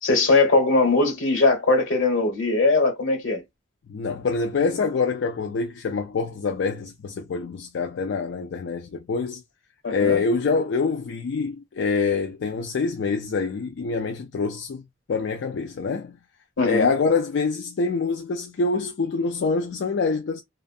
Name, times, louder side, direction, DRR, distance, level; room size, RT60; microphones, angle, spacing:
voice 1, 0.0-3.4 9.8-10.2 16.6-16.9, left 3 dB, 85° left, 1.2 m, -20 dB
voice 2, 3.9-9.4 9.9-14.8 15.1-16.2 16.6-20.4, left 4 dB, 65° left, 0.4 m, -25 dB
2.6 x 2.4 x 2.4 m
head